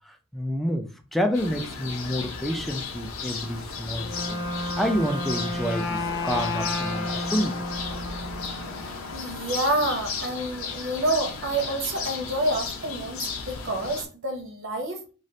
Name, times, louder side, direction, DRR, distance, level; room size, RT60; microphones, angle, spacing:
voice 1, 0.1-7.6, equal, ahead, 4 dB, 0.4 m, -29 dB
sound 1, 1.3-14.1, left 4 dB, 85° left, 0.6 m, -34 dB
Wind instrument woodwind instrument, 3.9-8.8, left 1 dB, 55° left, 0.8 m, -32 dB
voice 2, 8.8-15.0, right 1 dB, 65° right, 3 dB, 0.8 m, -28 dB
3.1 x 2.4 x 2.7 m, 0.36 s
head